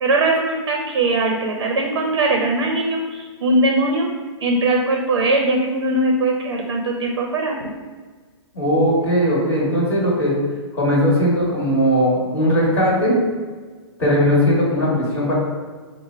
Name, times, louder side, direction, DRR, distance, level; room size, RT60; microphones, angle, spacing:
voice 1, 0.0-4.1 4.4-7.7, right 2 dB, 65° right, 1 dB, 0.6 m, -20 dB
voice 2, 8.5-10.3 10.7-13.1 14.0-15.3, equal, 15° left, -9 dB, 1.4 m, -18 dB
4.9 x 2.1 x 4.4 m, 1.4 s
hypercardioid pair, 170°, 15 cm